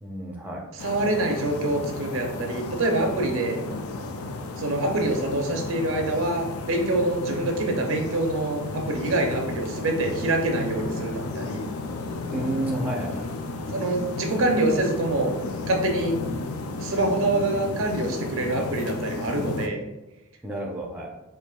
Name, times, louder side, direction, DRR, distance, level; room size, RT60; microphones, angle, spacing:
voice 1, 0.0-0.7 12.3-13.3 20.4-21.1, right 1 dB, 10° right, -2 dB, 0.5 m, -30 dB
sound 1, 0.8-19.7, left 3 dB, 90° left, 0.4 m, -33 dB
voice 2, 0.8-3.6 4.6-11.7 13.7-15.3 15.7-16.2 16.8-19.8, right 2 dB, 70° right, 3 dB, 0.6 m, -25 dB
4.5 x 2.6 x 2.3 m, 1.0 s
head